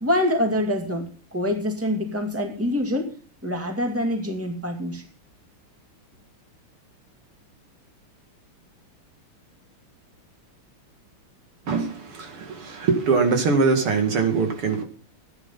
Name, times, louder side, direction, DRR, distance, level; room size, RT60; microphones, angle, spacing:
voice 1, 0.0-3.1 3.4-5.0, left 1 dB, 5° right, 3 dB, 2.1 m, -25 dB
voice 2, 11.7-14.8, right 4 dB, 80° right, 4 dB, 3.1 m, -22 dB
14.0 x 10.0 x 5.6 m, 0.42 s
omnidirectional pair, 2.4 m